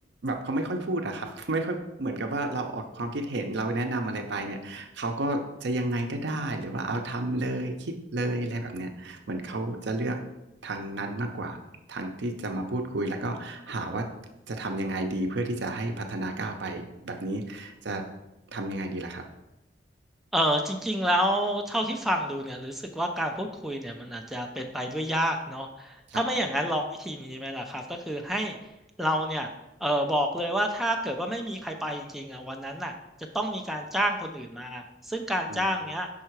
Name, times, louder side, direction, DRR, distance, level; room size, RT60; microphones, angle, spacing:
voice 1, 0.2-10.2 10.6-11.6 11.9-14.1 14.5-18.0 18.5-19.2 26.1-26.2 35.5-35.6, right 2 dB, 65° right, 5 dB, 0.7 m, -31 dB
voice 2, 20.3-28.6 29.0-29.5 29.8-32.9 33.3-36.1, equal, ahead, 2 dB, 0.4 m, -29 dB
5.6 x 3.7 x 4.5 m, 0.91 s
head